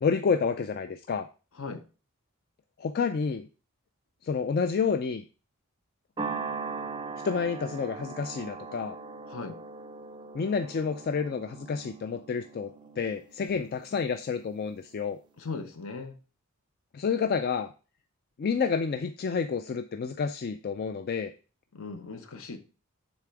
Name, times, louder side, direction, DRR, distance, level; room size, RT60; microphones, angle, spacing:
voice 1, 0.0-1.3 2.8-3.5 4.2-5.2 7.2-9.0 10.3-15.2 16.9-17.7 18.4-21.3, left 5 dB, 45° left, 9 dB, 0.3 m, -29 dB
sound 1, 6.2-14.7, right 4 dB, 20° right, 0.5 m, -40 dB
voice 2, 9.3-9.6 15.4-16.1 21.7-22.6, left 4 dB, 65° left, 8 dB, 0.8 m, -38 dB
7.1 x 3.4 x 4.6 m, 0.34 s
head